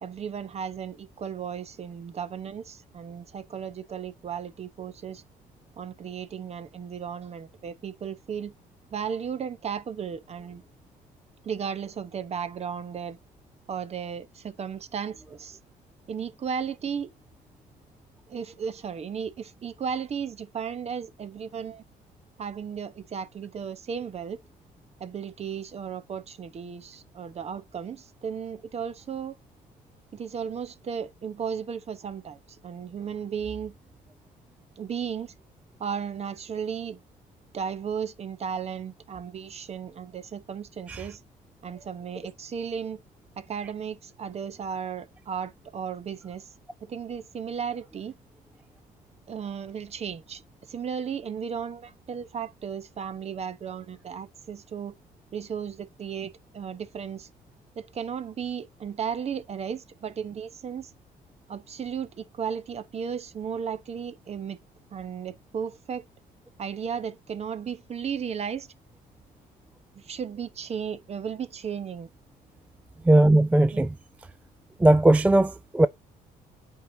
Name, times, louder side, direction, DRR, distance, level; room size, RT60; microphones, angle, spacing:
voice 1, 0.0-5.2 5.8-8.5 8.9-10.6 11.4-13.2 13.7-15.6 16.1-17.1 18.3-21.8 22.4-24.4 25.0-29.4 30.1-33.7 34.8-35.3 35.8-37.0 37.5-41.2 41.6-43.0 43.4-46.5 46.8-48.1 49.3-50.4 50.7-55.0 55.3-57.3 57.7-60.9 61.5-64.6 64.9-66.0 66.6-68.7 69.9-72.1 73.7-73.9, right 7 dB, 40° right, 0.9 m, -35 dB
voice 2, 73.1-73.9 74.8-75.9, right 1 dB, 10° right, 0.3 m, -18 dB
8.0 x 4.8 x 2.6 m
cardioid pair, 110°, 17 cm